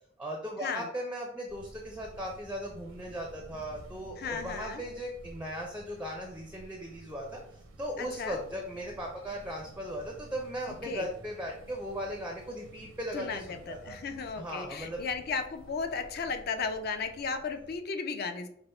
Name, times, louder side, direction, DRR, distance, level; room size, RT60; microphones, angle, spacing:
voice 1, 0.2-14.0 14.4-15.0, equal, 5° right, 1 dB, 0.4 m, -38 dB
sound 1, 1.5-17.8, right 1 dB, 90° right, 0.7 m, -52 dB
voice 2, 4.2-4.8 8.0-8.4 10.8-11.1 13.1-18.5, left 5 dB, 50° left, 8 dB, 0.4 m, -35 dB
5.3 x 2.1 x 4.3 m, 0.72 s
head